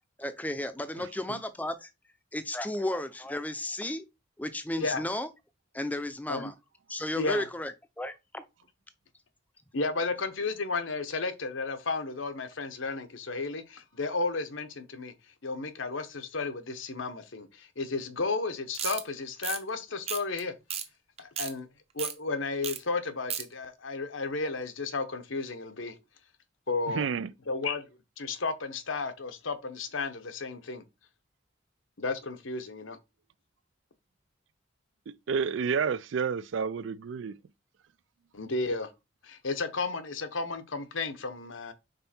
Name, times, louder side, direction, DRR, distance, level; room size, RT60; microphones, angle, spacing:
voice 1, 0.2-1.9 2.3-4.0 4.4-5.3 5.7-6.5 6.9-8.4, left 1 dB, 10° left, 0.5 m, -33 dB
voice 2, 1.0-1.4 26.9-27.3 35.1-37.4, right 6 dB, 70° right, 0.4 m, -30 dB
voice 3, 9.7-15.1 15.4-20.5 21.2-21.7 21.9-25.9 26.7-27.1 27.5-27.8 28.2-30.8 32.0-33.0 38.3-38.9 39.2-41.7, left 3 dB, 80° left, 1.0 m, -33 dB
sound 1, 18.7-19.0 19.4-19.6 20.1-20.4 20.7-20.8 21.2-21.5 22.0-22.1 22.6-22.8 23.0-23.4, right 9 dB, 30° right, 0.7 m, -33 dB
5.4 x 4.4 x 4.3 m
head